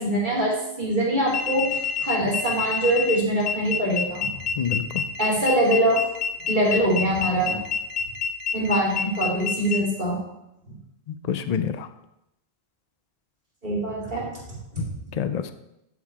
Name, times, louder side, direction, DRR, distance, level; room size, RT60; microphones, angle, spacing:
voice 1, 0.0-4.3 5.2-6.0 6.5-7.6 8.5-10.2 13.6-14.3 14.7-14.8, right 1 dB, 45° right, -6 dB, 2.8 m, -23 dB
sound 1, 1.3-9.8, left 6 dB, 70° left, 0.9 m, -27 dB
voice 2, 4.6-5.0 11.1-11.9 14.8-14.9 15.1-15.5, left 8 dB, 50° left, 10 dB, 0.5 m, -27 dB
10.5 x 3.9 x 4.7 m, 0.88 s
omnidirectional pair, 1.1 m